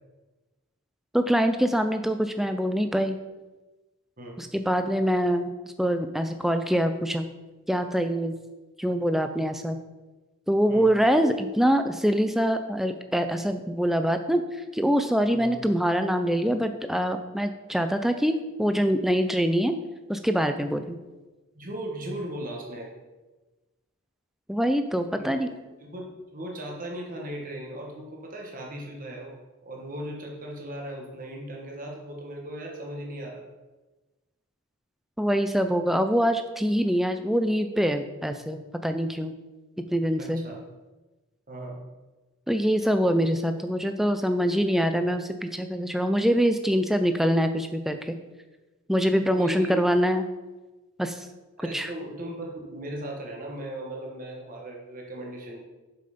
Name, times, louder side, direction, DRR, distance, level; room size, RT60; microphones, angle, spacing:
voice 1, 1.1-3.2 4.4-5.5 5.8-7.3 7.7-8.3 8.8-9.8 10.5-19.7 20.1-21.0 24.5-25.5 35.2-39.3 39.9-40.4 42.5-48.2 48.9-50.2 51.0-51.3 51.7-51.9, equal, ahead, 8 dB, 0.4 m, -24 dB
voice 2, 21.5-22.9 25.2-25.4 25.9-33.4 40.2-40.6 41.5-41.8 49.1-49.8 51.6-55.6, right 1 dB, 40° right, -1 dB, 1.3 m, -37 dB
7.6 x 5.5 x 5.1 m, 1.2 s
head